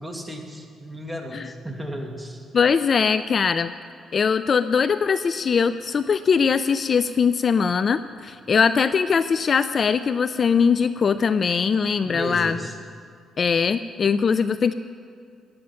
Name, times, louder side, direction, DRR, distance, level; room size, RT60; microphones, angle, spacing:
voice 1, 0.0-2.4 12.0-12.8, equal, 5° right, 1 dB, 2.1 m, -34 dB
voice 2, 2.5-3.7 4.1-12.6 13.4-14.7, left 6 dB, 45° left, 13 dB, 0.4 m, -21 dB
15.5 x 11.5 x 5.7 m, 2.3 s
cardioid pair, 90°, 0 cm